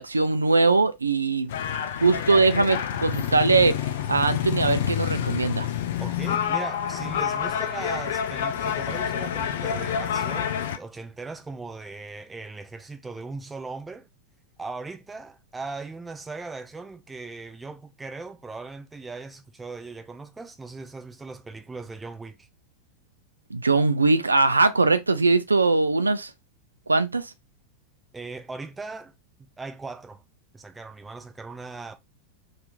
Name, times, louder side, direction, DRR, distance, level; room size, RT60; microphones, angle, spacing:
voice 1, 0.0-1.5 2.0-3.8 4.1-5.7 23.5-26.3 26.9-27.3, right 3 dB, 80° right, 0.4 m, -21 dB
sound 1, 1.5-10.8, left 9 dB, 55° left, 0.4 m, -28 dB
voice 2, 6.0-14.1 14.6-22.5 28.1-29.1 29.4-30.2 30.5-31.9, right 3 dB, 10° right, 0.4 m, -38 dB
2.9 x 2.4 x 3.4 m
figure-of-eight pair, 90°, 0 cm